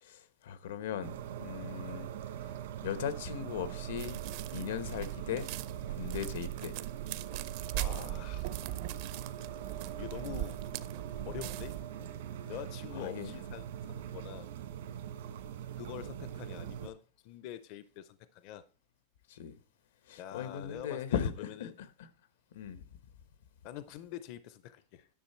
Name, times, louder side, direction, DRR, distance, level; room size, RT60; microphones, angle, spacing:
voice 1, 0.0-2.1 2.4-2.5 2.8-4.2 4.5-5.5 5.9-6.7 12.9-13.3 19.3-19.5 20.1-22.1 22.5-22.8, left 8 dB, 85° left, 1.1 m, -38 dB
sound 1, 1.0-16.9, right 10 dB, 75° right, 1.4 m, -42 dB
sound 2, 4.0-11.8, right 15 dB, 45° right, 0.5 m, -41 dB
voice 2, 7.7-8.5 10.0-10.6 11.3-12.1 12.5-14.5 15.8-18.6 20.2-21.8 23.6-25.1, left 11 dB, 40° left, 0.4 m, -45 dB
10.5 x 6.6 x 4.3 m
supercardioid pair, 180°, 0 cm